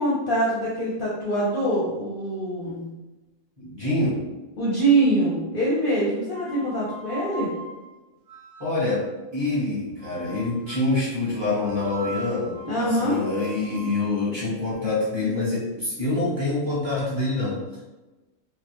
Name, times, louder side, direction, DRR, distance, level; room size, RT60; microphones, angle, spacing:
voice 1, 0.0-2.8 4.6-7.5 12.6-13.2, right 1 dB, 50° left, -6 dB, 0.7 m, -24 dB
voice 2, 3.6-4.2 8.6-9.1 9.3-17.8, left 2 dB, 20° right, -10 dB, 1.1 m, -26 dB
sound 1, 6.3-9.1 10.0-11.0 11.6-15.6, right 2 dB, 70° right, 0.3 m, -42 dB
3.4 x 2.3 x 2.9 m, 1.1 s
omnidirectional pair, 1.4 m